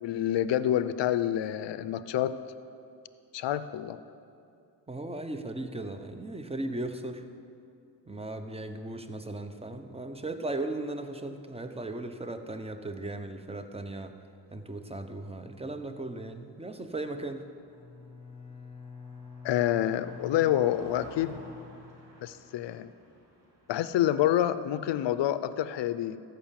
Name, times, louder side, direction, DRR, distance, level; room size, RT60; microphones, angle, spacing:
voice 1, 0.0-2.3 3.3-4.0 19.4-21.4 22.2-22.9 23.7-26.2, left 12 dB, 80° left, 14 dB, 0.6 m, -27 dB
voice 2, 4.9-7.3 8.1-14.1 14.5-17.4, right 2 dB, 15° right, 8 dB, 0.9 m, -37 dB
Car passing by, 16.8-25.1, equal, 80° right, 2.6 m, -55 dB
Bowed string instrument, 17.7-22.4, left 5 dB, 15° left, 1.4 m, -47 dB
14.0 x 5.7 x 7.5 m, 2.7 s
cardioid pair, 80°, 42 cm